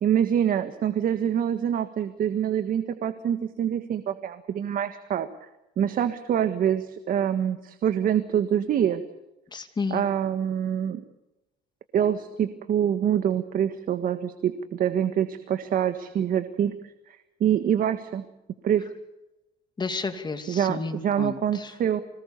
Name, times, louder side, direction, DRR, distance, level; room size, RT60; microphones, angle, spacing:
voice 1, 0.0-5.5 5.8-9.0 9.9-11.0 11.9-18.2 18.6-18.8 20.5-22.0, right 9 dB, 55° right, 9 dB, 1.6 m, -25 dB
voice 2, 9.5-10.0 19.8-21.7, left 4 dB, 25° left, 8 dB, 2.7 m, -31 dB
25.5 x 19.5 x 6.8 m, 0.96 s
cardioid pair, 110°, 17 cm